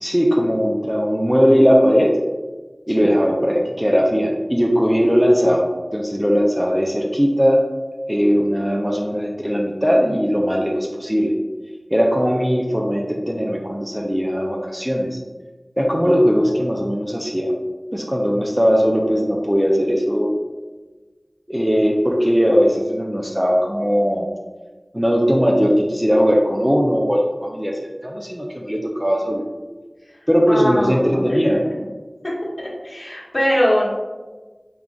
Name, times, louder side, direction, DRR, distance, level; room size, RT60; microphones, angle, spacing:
voice 1, 0.0-2.1 2.9-5.6 5.9-7.6 8.1-11.3 11.9-15.2 15.8-17.5 17.9-20.3 21.5-24.3 24.9-29.4 30.3-31.6, equal, 5° right, -1 dB, 0.4 m, -19 dB
voice 2, 30.5-31.4 31.7-31.9 32.6-33.9, equal, 50° left, -7 dB, 1.2 m, -22 dB
3.6 x 3.6 x 2.3 m, 1.3 s
wide cardioid pair, 50°, 0 cm